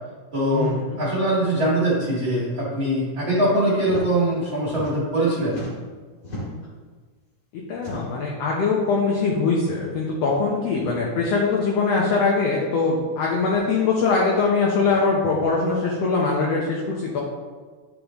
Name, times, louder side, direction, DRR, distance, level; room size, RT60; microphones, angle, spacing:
voice 1, 0.3-5.6, right 1 dB, 40° right, -9 dB, 2.4 m, -22 dB
sound 1, 3.8-4.1 4.4-5.2 5.5-6.7 7.7-8.3 9.2-9.4 9.7-9.8 10.7-11.0 12.1-12.2 13.4-13.7 14.8-15.0, left 1 dB, 40° left, 2.6 m, -37 dB
voice 2, 7.7-17.2, left 4 dB, 65° left, -3 dB, 1.9 m, -22 dB
10.5 x 5.3 x 3.1 m, 1.4 s
omnidirectional pair, 3.5 m